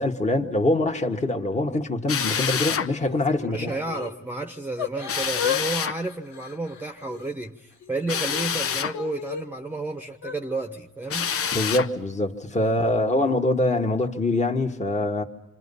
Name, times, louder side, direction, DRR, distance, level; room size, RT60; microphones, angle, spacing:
voice 1, 0.0-3.7 11.5-15.2, left 2 dB, 25° left, 1.8 m, -24 dB
Drill, 2.1-2.9 5.1-6.0 8.1-9.0 11.1-11.9, left 7 dB, 50° left, 0.9 m, -27 dB
Yell / Crying sobbing, 2.9-4.1 4.8-5.7 5.9-7.3 7.8-9.4 10.1-10.4, left 8 dB, 65° left, 2.5 m, -34 dB
voice 2, 3.4-11.3 12.5-12.9, right 2 dB, 5° right, 1.2 m, -32 dB
27.0 x 26.0 x 5.6 m
cardioid pair, 90°, 30 cm